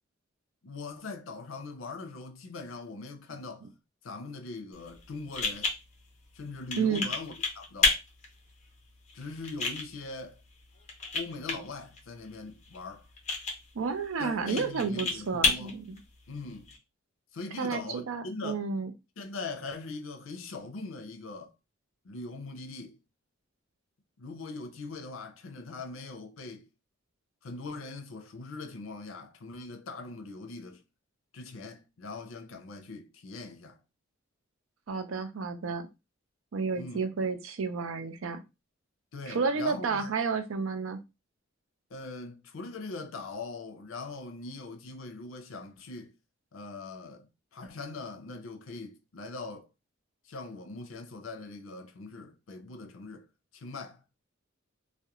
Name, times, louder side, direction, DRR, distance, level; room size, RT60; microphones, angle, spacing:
voice 1, 0.6-3.7 4.0-5.7 6.3-8.0 9.1-10.4 11.1-13.1 14.2-15.8 16.3-16.7 17.3-18.7 19.2-21.5 22.0-23.0 24.2-26.7 27.4-30.8 31.3-33.8 36.7-37.1 39.1-40.1 41.9-46.1 46.5-49.7 50.2-53.3 53.5-54.0, left 3 dB, 80° left, 0.5 m, -41 dB
sound 1, 4.7-16.8, left 4 dB, 35° left, 0.6 m, -33 dB
voice 2, 13.7-15.8 17.6-18.9 34.9-35.9 36.5-38.4 39.3-41.0, right 5 dB, 85° right, 0.5 m, -31 dB
2.4 x 2.1 x 2.8 m
head